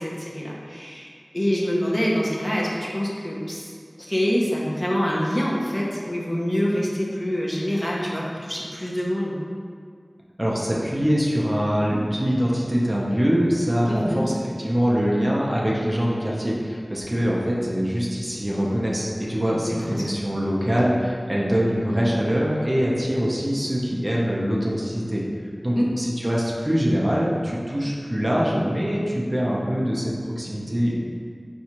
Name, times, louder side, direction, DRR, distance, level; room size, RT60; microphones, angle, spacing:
voice 1, 0.0-3.7 4.1-9.4 13.9-14.3 19.6-20.1 25.8-25.9, equal, 20° left, -5 dB, 0.6 m, -25 dB
voice 2, 10.4-14.3 14.6-25.2 25.6-31.0, equal, 35° right, -5 dB, 0.6 m, -23 dB
4.3 x 2.3 x 2.9 m, 2.1 s
wide cardioid pair, 40°, 0 cm